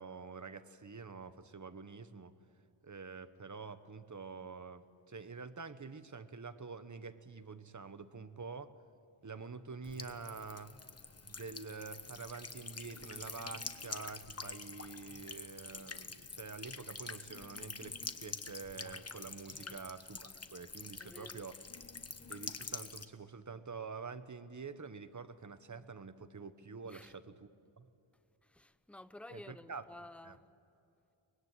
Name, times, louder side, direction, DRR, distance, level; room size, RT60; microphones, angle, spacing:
voice 1, 0.0-2.3 2.8-8.7 9.2-10.7 11.2-21.6 22.3-27.5 27.8-27.9 29.3-29.8 30.2-30.4, right 4 dB, 35° right, 1.2 m, -47 dB
Buzz / Water tap faucet / Trickle dribble, 9.8-23.0, left 4 dB, 30° left, 1.2 m, -46 dB
voice 2, 21.0-21.4 26.8-27.2 28.4-30.4, left 1 dB, 5° left, 0.8 m, -53 dB
24.0 x 21.0 x 9.7 m
wide cardioid pair, 100°, 49 cm